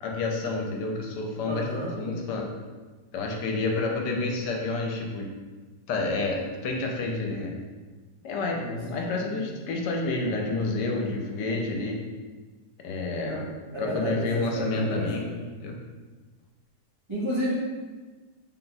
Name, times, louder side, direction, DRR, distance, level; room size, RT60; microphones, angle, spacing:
voice 1, 0.0-1.7 2.0-2.5 3.1-5.3 5.9-7.6 8.2-12.0 12.8-13.5 13.8-15.3 15.6-15.7, left 3 dB, 85° left, 0 dB, 1.2 m, -29 dB
voice 2, 1.4-1.9 8.6-8.8 9.2-9.5 13.2-13.4 13.7-15.3 17.1-17.5, equal, 35° right, -9 dB, 0.4 m, -32 dB
3.7 x 2.3 x 4.0 m, 1.4 s
omnidirectional pair, 1.8 m